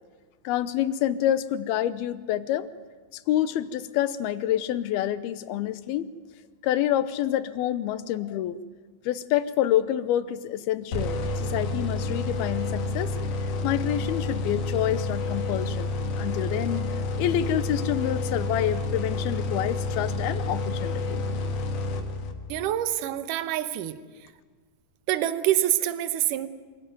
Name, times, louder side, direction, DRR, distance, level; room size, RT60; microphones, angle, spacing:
voice 1, 0.4-2.7 3.3-6.1 6.6-8.6 9.1-13.2 13.6-15.9 16.2-21.2, left 11 dB, 85° left, 13 dB, 2.8 m, -27 dB
sound 1, 10.9-22.6, left 2 dB, 60° left, 3.1 m, -29 dB
voice 2, 22.5-24.0 25.1-26.5, right 12 dB, 70° right, 12 dB, 2.3 m, -26 dB
26.0 x 17.0 x 9.3 m, 1.5 s
omnidirectional pair, 4.4 m